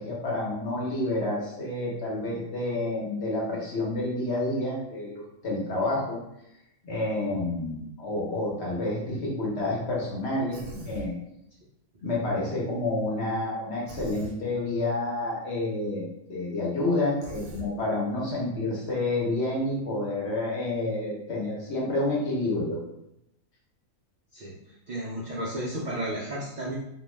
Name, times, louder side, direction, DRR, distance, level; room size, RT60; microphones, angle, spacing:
voice 1, 0.0-6.2 6.8-11.1 12.0-22.8, left 2 dB, 55° left, -4 dB, 1.0 m, -29 dB
Human voice, 10.5-11.1 13.9-14.3 17.2-17.7, right 2 dB, 90° right, 1.1 m, -40 dB
voice 2, 24.9-26.7, right 1 dB, 70° right, -5 dB, 0.4 m, -33 dB
2.5 x 2.2 x 3.2 m, 0.82 s
omnidirectional pair, 1.4 m